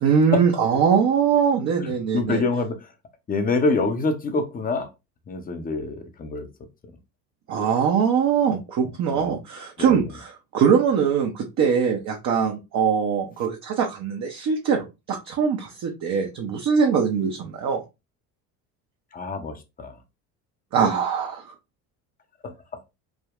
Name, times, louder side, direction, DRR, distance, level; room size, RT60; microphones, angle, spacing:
voice 1, 0.0-2.4 7.5-17.8 20.7-21.4, right 6 dB, 35° right, 0.6 m, -22 dB
voice 2, 1.7-2.9 3.3-4.9 5.3-6.5 9.1-9.3 9.8-10.1 19.1-20.0 22.4-22.5, left 3 dB, 20° left, 0.6 m, -26 dB
3.6 x 2.1 x 2.4 m
hypercardioid pair, 65°, 48 cm